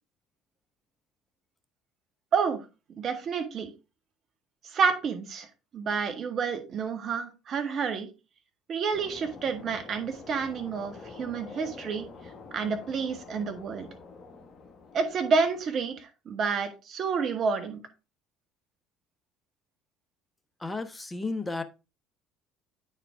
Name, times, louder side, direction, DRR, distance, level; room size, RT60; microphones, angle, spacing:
voice 1, 2.9-3.7 4.6-5.5 5.7-8.1 8.7-12.1 12.5-13.9 14.9-17.8, right 5 dB, 50° right, 7 dB, 1.6 m, -29 dB
sound 1, 8.9-16.0, left 4 dB, 40° left, 1.4 m, -47 dB
voice 2, 20.6-21.6, left 3 dB, 15° left, 9 dB, 1.0 m, -33 dB
9.1 x 4.5 x 3.6 m, 0.29 s
hypercardioid pair, 60°, 0 cm